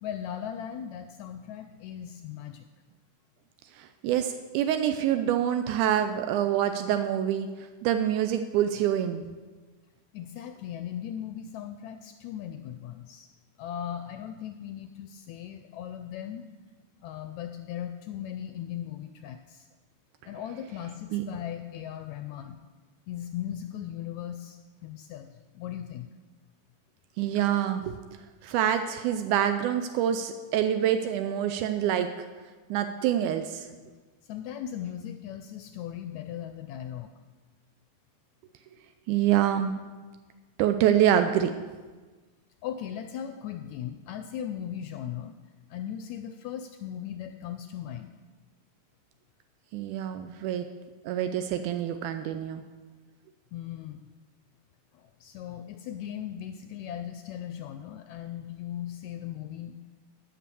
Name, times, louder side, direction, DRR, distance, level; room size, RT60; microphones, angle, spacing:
voice 1, 0.0-2.7 10.1-13.3 13.6-16.5 17.0-19.7 20.2-22.6 23.1-26.1 33.7-34.0 34.2-37.1 42.6-45.4 45.7-48.1 53.5-54.0 54.9-59.8, left 10 dB, 80° left, 8 dB, 1.7 m, -38 dB
voice 2, 4.0-7.5 7.8-9.2 21.1-21.2 27.2-28.0 28.4-32.1 32.7-33.7 39.1-39.8 40.6-41.5 49.7-50.7 51.1-52.6, right 10 dB, 85° right, 8 dB, 2.0 m, -26 dB
11.5 x 6.0 x 6.9 m, 1.3 s
omnidirectional pair, 3.6 m